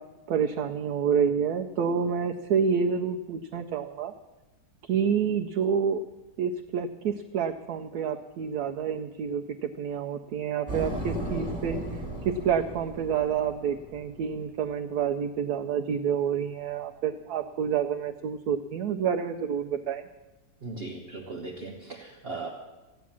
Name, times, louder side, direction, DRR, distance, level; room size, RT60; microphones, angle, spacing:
voice 1, 0.3-4.1 4.8-6.0 6.4-20.0, right 7 dB, 70° right, 4 dB, 1.1 m, -28 dB
sound 1, 10.7-14.4, right 1 dB, 5° right, 2.2 m, -36 dB
voice 2, 20.6-22.5, right 3 dB, 40° right, 0 dB, 1.3 m, -38 dB
15.0 x 9.4 x 7.3 m, 1.1 s
omnidirectional pair, 1.8 m